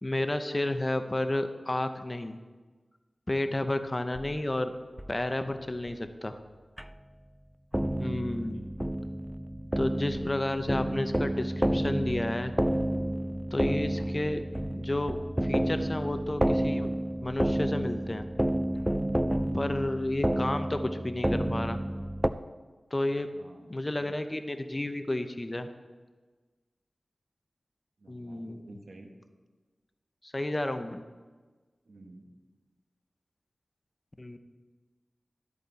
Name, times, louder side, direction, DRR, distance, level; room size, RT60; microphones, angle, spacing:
voice 1, 0.0-2.4 3.3-4.7 5.1-6.4 8.0-8.6 9.8-12.5 13.5-14.4 14.8-15.2 15.4-16.9 17.2-18.3 19.5-21.8 22.9-23.3 23.7-25.7 28.1-28.6 30.2-31.0 34.2-34.4, left 1 dB, 30° left, 8 dB, 0.7 m, -31 dB
sound 1, 4.2-4.3 5.0-5.1 5.9-6.0 6.8-6.9 7.7-22.3, right 1 dB, 10° right, 0.4 m, -30 dB
voice 2, 8.5-8.8 19.8-20.1 23.3-23.8 28.0-29.1 31.8-32.3, right 2 dB, 75° right, 3 dB, 1.4 m, -52 dB
12.5 x 8.3 x 4.1 m, 1.3 s
wide cardioid pair, 65°, 0 cm